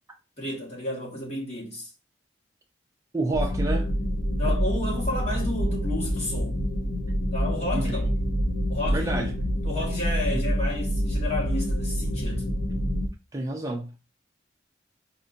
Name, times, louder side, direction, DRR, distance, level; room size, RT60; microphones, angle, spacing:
voice 1, 0.4-1.9 4.4-6.6 7.3-8.1 8.7-9.4 9.6-12.5, left 2 dB, 35° left, 1.4 m, -32 dB
voice 2, 3.1-3.9 7.7-8.0 8.9-9.3 10.3-10.4 13.3-14.0, right 2 dB, 15° right, 0.5 m, -29 dB
sound 1, 3.3-13.1, equal, 80° left, 0.7 m, -27 dB
4.2 x 2.6 x 2.5 m
head